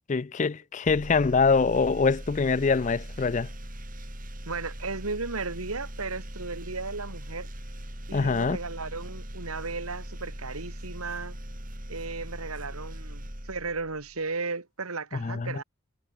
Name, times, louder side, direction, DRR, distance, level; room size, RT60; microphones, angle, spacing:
voice 1, 0.1-3.5 8.1-8.6 15.1-15.6, left 4 dB, 35° left, 0.4 m, -24 dB
sound 1, 0.8-14.2, equal, 40° right, 7.7 m, -40 dB
voice 2, 4.5-7.5 8.1-11.4 11.9-15.6, right 4 dB, 90° right, 2.3 m, -35 dB
head